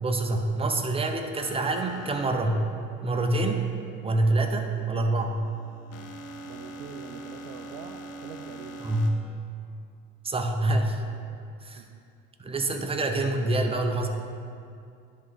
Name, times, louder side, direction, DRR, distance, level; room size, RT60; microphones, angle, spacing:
voice 1, 0.0-2.7 3.0-3.6 4.0-5.4 8.8-9.1 10.2-11.0 11.6-11.8 12.4-14.1, right 2 dB, 20° right, 4 dB, 0.7 m, -26 dB
sound 1, 1.3-2.3 4.4-9.1, right 1 dB, 55° left, 0.8 m, -43 dB
voice 2, 6.4-8.8 11.8-12.0 12.7-12.9, right 7 dB, 75° right, 3 dB, 0.5 m, -44 dB
10.5 x 3.7 x 3.5 m, 2.5 s
supercardioid pair, 85°, 30 cm